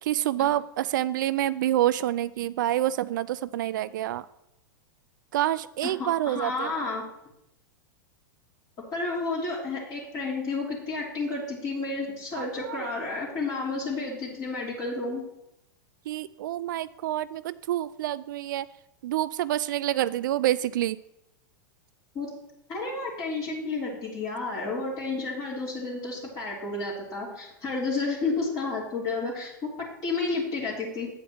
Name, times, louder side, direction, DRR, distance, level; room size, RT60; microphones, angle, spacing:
voice 1, 0.0-4.2 5.3-6.8 12.3-12.9 16.1-18.7 19.0-21.0, right 13 dB, 70° right, 15 dB, 0.4 m, -27 dB
voice 2, 6.0-7.1 8.9-15.2 22.1-22.3 22.7-31.1, left 3 dB, 35° left, -6 dB, 3.0 m, -31 dB
9.1 x 5.1 x 6.0 m, 0.84 s
hypercardioid pair, 115°, 11 cm